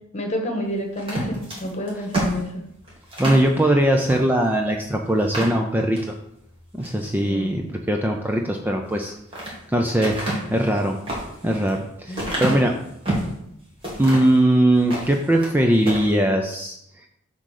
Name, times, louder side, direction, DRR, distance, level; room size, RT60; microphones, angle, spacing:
voice 1, 0.1-2.5 7.2-7.5 12.1-12.4, equal, 30° left, 3 dB, 1.4 m, -29 dB
sound 1, 1.0-3.5 4.0-4.2 4.6-4.7 5.2-6.1 6.6-7.0 8.8-9.6 10.0-13.4 13.8-14.4 14.8-15.5 15.8-16.1, right 1 dB, 25° right, 2.4 m, -29 dB
voice 2, 3.2-6.0 6.7-9.1 9.7-10.2 10.5-11.0 11.4-12.7 14.0-16.8, right 1 dB, 10° right, 2 dB, 0.4 m, -20 dB
7.8 x 3.8 x 6.5 m, 0.77 s
head